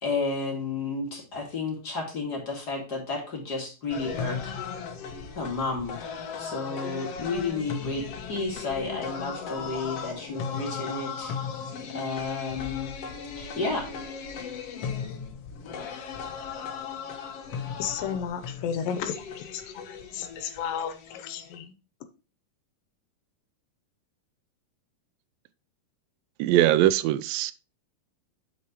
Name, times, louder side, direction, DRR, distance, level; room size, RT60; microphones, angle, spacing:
voice 1, 0.0-4.6 5.3-11.3 11.9-12.9 13.4-13.9, left 3 dB, 30° left, 2.3 m, -32 dB
sound 1, 3.9-21.6, left 6 dB, 65° left, 1.7 m, -37 dB
voice 2, 17.8-21.7, left 8 dB, 80° left, 2.5 m, -33 dB
voice 3, 26.4-27.5, right 13 dB, 85° right, 2.3 m, -21 dB
8.5 x 6.8 x 3.0 m
omnidirectional pair, 3.9 m